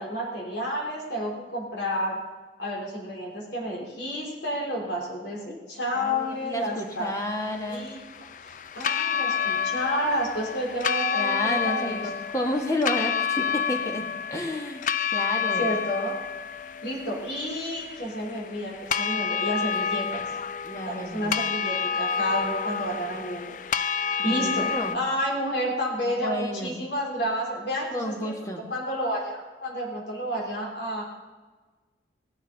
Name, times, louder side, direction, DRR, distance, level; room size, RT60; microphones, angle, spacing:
voice 1, 0.0-2.2 2.6-7.1 7.7-8.0 8.7-12.1 15.6-16.1 16.8-20.2 20.8-31.0, equal, 80° left, -1 dB, 3.7 m, -30 dB
voice 2, 5.9-7.9 11.1-14.8 15.1-15.7 20.6-21.3 24.2-25.0 26.0-26.8 27.9-28.6, left 1 dB, 20° left, 2 dB, 1.6 m, -31 dB
sound 1, 7.0-25.0, left 7 dB, 45° left, 0.4 m, -29 dB
16.5 x 11.5 x 4.1 m, 1.3 s
head